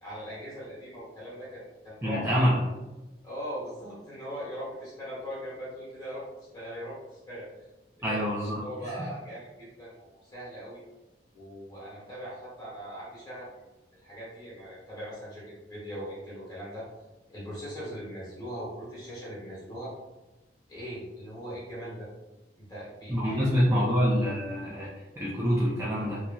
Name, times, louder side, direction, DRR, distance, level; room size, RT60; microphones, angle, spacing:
voice 1, 0.0-2.2 3.2-7.5 8.0-10.8 11.3-13.5 14.0-15.4 15.7-16.8 17.3-19.9 20.7-22.1 22.6-23.5 23.7-23.9, equal, 20° left, -8 dB, 1.2 m, -40 dB
voice 2, 2.0-2.6 8.0-9.0 23.1-26.2, equal, 15° right, -7 dB, 0.4 m, -26 dB
3.0 x 2.5 x 2.2 m, 1.1 s
head